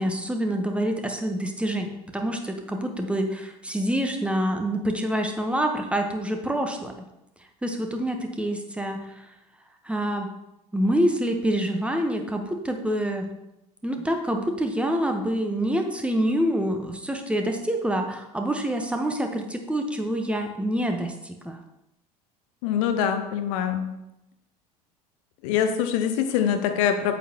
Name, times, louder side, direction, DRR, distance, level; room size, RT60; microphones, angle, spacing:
voice 1, 0.0-6.9 7.6-9.2 9.8-10.3 10.7-13.3 13.8-21.6, right 1 dB, 5° right, 4 dB, 1.0 m, -26 dB
voice 2, 22.6-23.9 25.4-27.1, left 8 dB, 55° left, 7 dB, 0.9 m, -24 dB
8.5 x 8.4 x 2.9 m, 0.89 s
figure-of-eight pair, 70°, 20 cm